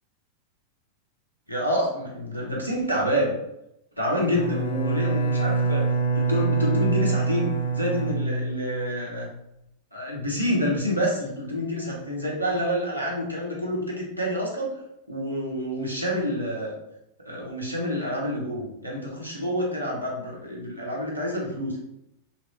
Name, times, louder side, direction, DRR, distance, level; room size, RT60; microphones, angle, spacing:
voice 1, 1.5-3.4 4.0-5.8 6.1-9.3 9.9-14.7 15.1-16.8 17.2-21.8, equal, 90° right, -3 dB, 0.9 m, -28 dB
Bowed string instrument, 4.3-9.1, right 4 dB, 65° left, 0.7 m, -25 dB
3.4 x 3.0 x 3.2 m, 0.82 s
figure-of-eight pair, 90°, 0 cm